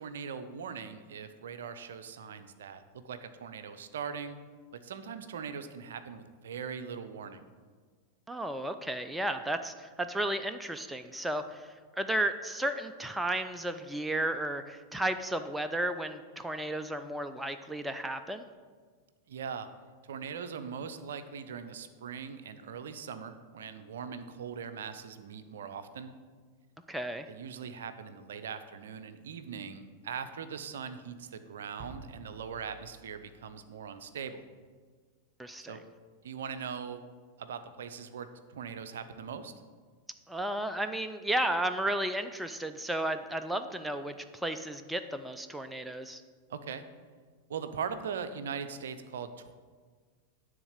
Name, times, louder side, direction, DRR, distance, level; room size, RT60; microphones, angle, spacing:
voice 1, 0.0-4.4 4.8-7.4 19.3-19.7 20.0-26.1 27.3-34.4 35.7-35.8 36.2-37.0 37.4-39.5 46.5-46.8 47.5-49.5, right 6 dB, 60° right, 10 dB, 0.5 m, -40 dB
voice 2, 8.3-18.4 26.9-27.3 35.4-35.8 40.3-46.2, right 1 dB, 5° right, 8 dB, 0.4 m, -33 dB
sound 1, 31.8-34.3, right 3 dB, 30° right, 1.0 m, -52 dB
9.9 x 3.6 x 6.6 m, 1.5 s
figure-of-eight pair, 90°, 0 cm